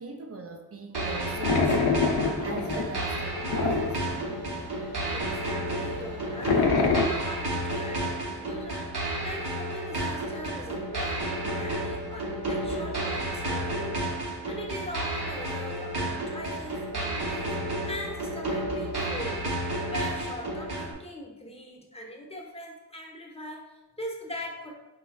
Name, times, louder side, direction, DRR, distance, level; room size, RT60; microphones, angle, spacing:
voice 1, 0.0-2.0 2.4-4.3, right 4 dB, 35° right, 3 dB, 0.5 m, -39 dB
sound 1, 0.9-20.9, right 1 dB, 65° right, 0.8 m, -31 dB
sound 2, 1.3-4.7 5.0-5.1 5.3-5.4 5.8-7.0, left 4 dB, 70° left, 0.5 m, -25 dB
voice 2, 5.1-24.7, left 1 dB, 15° left, 0 dB, 0.6 m, -41 dB
4.3 x 2.2 x 2.2 m, 1.0 s
cardioid pair, 40°, 41 cm